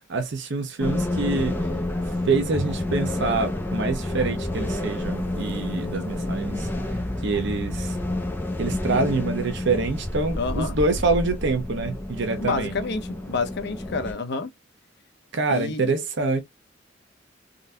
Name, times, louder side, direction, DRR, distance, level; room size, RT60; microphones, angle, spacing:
voice 1, 0.1-1.6 2.3-6.7 7.2-8.0 8.6-12.7 15.3-16.4, right 3 dB, 65° right, 0.7 m, -26 dB
sound 1, 0.8-14.1, left 1 dB, 10° left, 0.6 m, -29 dB
voice 2, 10.3-10.8 12.4-14.5 15.5-15.9, left 4 dB, 60° left, 0.7 m, -29 dB
3.7 x 2.6 x 2.2 m
head